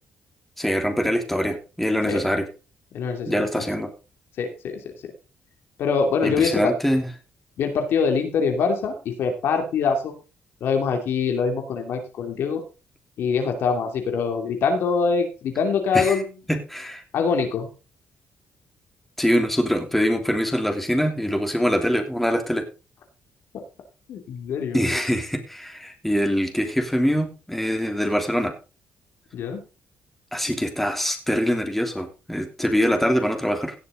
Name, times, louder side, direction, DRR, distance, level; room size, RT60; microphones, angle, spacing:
voice 1, 0.6-2.5 3.3-3.9 6.2-7.1 15.9-16.2 16.5-17.0 19.2-22.6 24.7-28.5 30.3-33.7, equal, 5° left, 4 dB, 3.2 m, -23 dB
voice 2, 2.9-3.7 4.4-4.9 5.8-6.7 7.6-10.1 10.6-12.6 13.2-16.2 17.1-17.7 23.5-23.6 24.1-24.9 29.3-29.6, left 5 dB, 75° left, 4 dB, 2.7 m, -24 dB
17.0 x 6.8 x 4.0 m, 0.32 s
cardioid pair, 75°, 4 cm